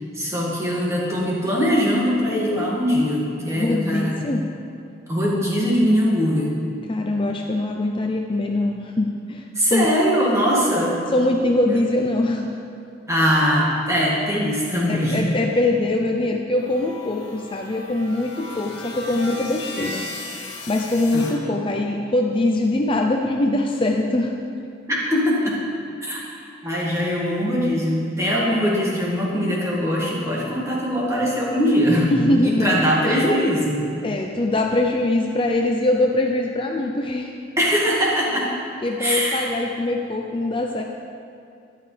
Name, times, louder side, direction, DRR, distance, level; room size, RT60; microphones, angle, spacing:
voice 1, 0.1-4.2 5.1-6.5 9.5-11.1 11.7-11.8 13.1-15.3 21.1-21.6 24.9-25.5 26.0-26.2 26.6-32.1 32.4-33.8 37.6-38.5 39.0-39.5, equal, 15° right, -5 dB, 2.1 m, -21 dB
voice 2, 3.6-4.4 6.9-9.9 11.1-12.6 14.9-20.0 20.7-24.3 32.1-32.8 34.0-37.3 38.8-40.8, left 2 dB, 30° left, 1 dB, 0.5 m, -22 dB
sound 1, 16.6-21.3, left 2 dB, 60° left, 2.4 m, -36 dB
13.0 x 11.0 x 3.4 m, 2.5 s
head